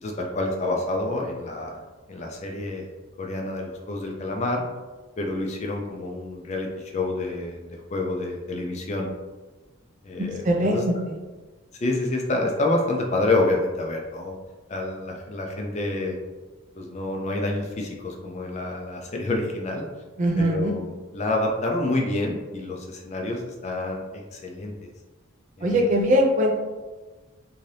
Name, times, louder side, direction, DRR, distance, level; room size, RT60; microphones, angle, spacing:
voice 1, 0.0-1.8 2.1-2.8 3.2-4.6 5.2-9.1 10.0-10.8 11.8-14.4 14.7-16.2 16.8-19.8 20.4-20.8 21.1-24.9 25.6-25.8, left 2 dB, 30° left, 1 dB, 0.4 m, -28 dB
voice 2, 10.2-11.2 20.2-20.7 25.6-26.6, equal, 35° right, 1 dB, 0.4 m, -22 dB
2.7 x 2.6 x 3.2 m, 1.3 s
head